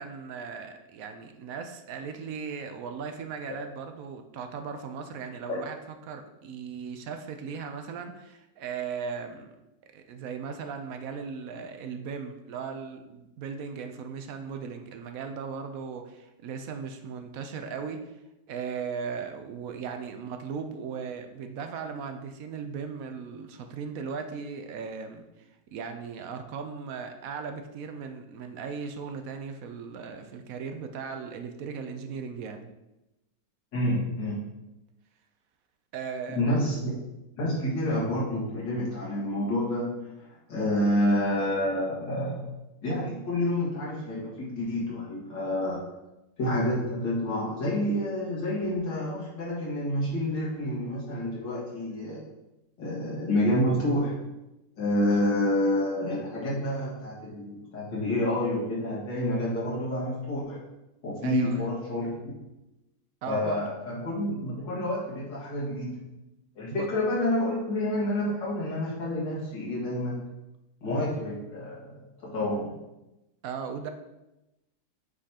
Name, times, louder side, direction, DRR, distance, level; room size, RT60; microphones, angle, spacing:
voice 1, 0.0-5.8 6.0-9.5 9.9-18.0 18.5-25.2 25.7-32.7 35.9-36.4 61.2-61.7 63.2-63.6 66.7-66.9 73.4-73.9, right 6 dB, 65° right, 6 dB, 0.9 m, -37 dB
voice 2, 33.7-34.4 36.3-36.9 37.4-40.1 40.5-42.5 42.8-45.9 46.4-52.2 52.8-54.2 54.8-60.6 61.0-62.2 63.3-66.0 66.6-70.3 70.8-72.8, left 1 dB, 80° left, -7 dB, 2.4 m, -28 dB
8.3 x 5.2 x 2.9 m, 0.95 s
omnidirectional pair, 1.9 m